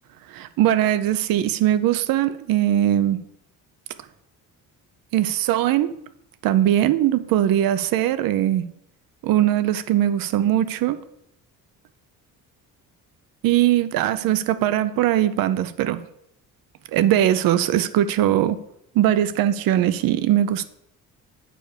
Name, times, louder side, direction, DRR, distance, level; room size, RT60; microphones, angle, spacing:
voice 1, 0.3-3.2 5.1-6.0 6.4-8.7 9.2-11.0 13.4-16.0 16.9-18.6 18.9-20.6, right 12 dB, 75° right, 0.6 m, -20 dB
8.9 x 5.1 x 6.6 m
cardioid pair, 140°, 35 cm